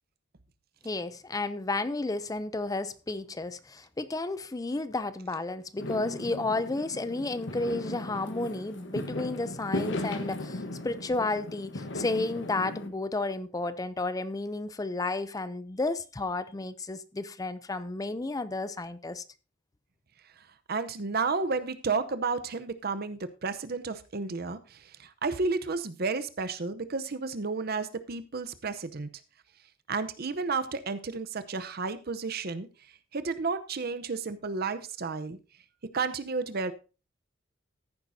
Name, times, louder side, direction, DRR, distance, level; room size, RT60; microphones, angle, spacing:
voice 1, 0.8-19.2, left 2 dB, 20° left, 0.5 m, -32 dB
Fireworks, 5.8-12.9, left 1 dB, 65° left, 1.2 m, -37 dB
voice 2, 20.4-29.1 29.9-32.7 33.1-35.4 35.9-36.7, right 4 dB, 55° right, 0.8 m, -32 dB
14.0 x 10.5 x 2.7 m
head